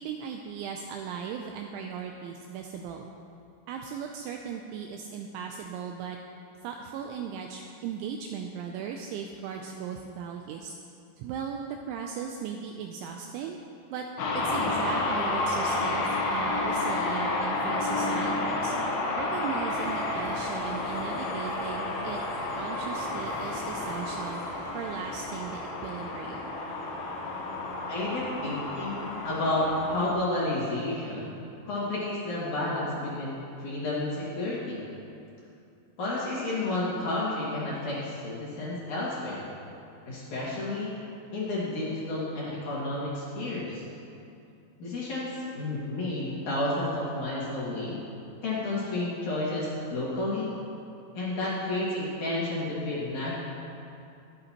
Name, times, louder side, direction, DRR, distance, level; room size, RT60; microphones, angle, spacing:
voice 1, 0.0-3.1 3.7-6.2 6.6-10.7 11.2-13.6 13.9-14.1 14.3-18.7 19.2-22.2 22.6-24.4 24.7-26.6, right 7 dB, 85° right, 3 dB, 2.7 m, -37 dB
sound 1, 14.2-30.1, left 2 dB, 70° left, 3.4 m, -31 dB
sound 2, 19.7-25.6, right 2 dB, 60° right, 3.1 m, -48 dB
voice 2, 27.9-31.3 31.7-34.8 36.0-39.4 40.1-40.9 41.3-43.8 44.8-48.0 48.4-50.5 51.1-53.4, left 2 dB, 50° left, -7 dB, 2.7 m, -31 dB
22.5 x 7.9 x 2.9 m, 2.6 s
omnidirectional pair, 5.9 m